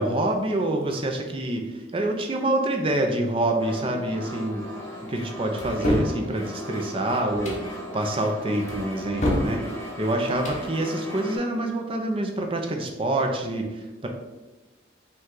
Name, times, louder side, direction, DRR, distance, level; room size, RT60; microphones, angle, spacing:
voice 1, 0.0-4.7 5.1-9.6 10.0-14.1, right 1 dB, 30° right, 3 dB, 0.5 m, -26 dB
sound 1, 3.6-11.4, equal, 15° left, 1.2 m, -38 dB
sound 2, 5.6-6.2 7.3-7.6 8.7-9.5 10.3-10.6, left 1 dB, 40° left, 0.8 m, -26 dB
5.2 x 2.3 x 3.8 m, 1.1 s
head